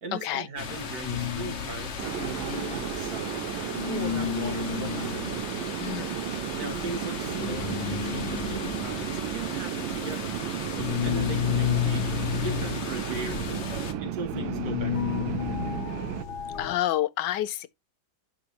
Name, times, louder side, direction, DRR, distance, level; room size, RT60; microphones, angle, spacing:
voice 1, 0.0-3.5 3.8-5.1 6.5-10.4 11.0-13.7 14.0-15.5, right 3 dB, 50° right, 2.1 m, -38 dB
sound 1, 0.6-13.9, left 6 dB, 45° left, 1.0 m, -38 dB
sound 2, 1.1-3.4 3.7-16.8, left 10 dB, 90° left, 1.7 m, -32 dB
sound 3, 2.0-16.2, right 12 dB, 85° right, 1.3 m, -34 dB
voice 2, 5.8-6.1 16.6-17.7, left 13 dB, 70° left, 1.2 m, -28 dB
11.0 x 3.8 x 2.9 m
omnidirectional pair, 2.1 m